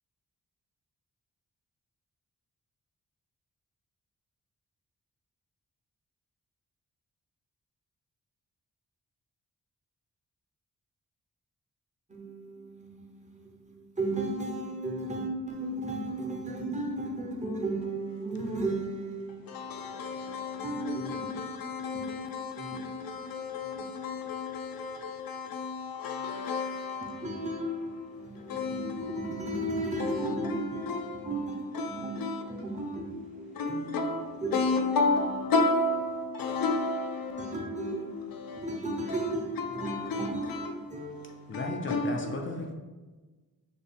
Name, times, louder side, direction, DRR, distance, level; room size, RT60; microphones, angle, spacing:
voice 1, 12.1-19.6 20.0-21.5 21.9-24.3 27.0-34.1 34.4-35.4 37.4-41.8 42.1-42.2, right 2 dB, 20° right, 0.7 m, -36 dB
voice 2, 19.5-27.3 28.5-29.2 30.0-31.3 31.7-32.4 33.6-37.6 38.4-38.6 39.1-39.3 39.6-40.8 41.5-42.5, left 3 dB, 80° left, 0.6 m, -32 dB
voice 3, 41.5-42.7, left 2 dB, 35° left, 0.4 m, -35 dB
6.5 x 2.3 x 3.4 m
wide cardioid pair, 170°, 34 cm